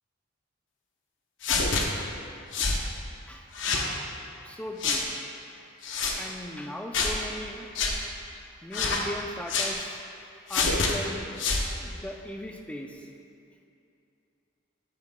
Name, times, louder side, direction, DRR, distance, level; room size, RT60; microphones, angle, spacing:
sound 1, 1.4-1.8 2.5-2.8 3.5-3.9 4.8-5.0 5.8-6.2 6.9-7.2 7.7-7.9 8.7-9.0 9.5-9.7 10.5-10.9 11.4-11.7, left 4 dB, 70° left, 0.7 m, -26 dB
voice 1, 4.4-5.1 6.2-7.7 8.6-10.0 10.5-11.4 11.7-13.1, equal, 5° left, 2 dB, 0.3 m, -38 dB
8.7 x 7.6 x 2.2 m, 2.6 s
head